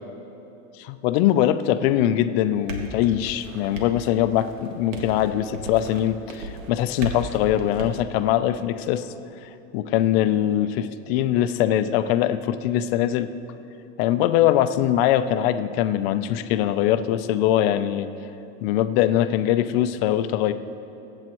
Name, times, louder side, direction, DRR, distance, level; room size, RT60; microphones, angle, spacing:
voice 1, 0.8-9.1 9.4-13.3 14.0-18.1 18.6-20.5, left 12 dB, 50° left, 11 dB, 0.6 m, -22 dB
sound 1, 2.4-8.0, right 1 dB, 80° right, 1.9 m, -36 dB
23.5 x 8.8 x 3.1 m, 2.9 s
supercardioid pair, 160°, 38 cm